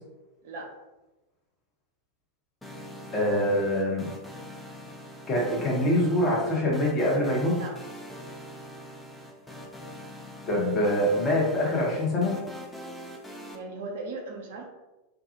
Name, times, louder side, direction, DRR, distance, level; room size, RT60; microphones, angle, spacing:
sound 1, 2.6-13.6, equal, 5° left, 0.4 m, -43 dB
voice 1, 3.1-4.1 5.3-7.5 10.5-12.3, left 1 dB, 25° left, -3 dB, 0.8 m, -24 dB
voice 2, 13.5-14.6, right 3 dB, 55° right, 1 dB, 0.4 m, -37 dB
2.3 x 2.0 x 2.8 m, 1.0 s
figure-of-eight pair, 90°, 0 cm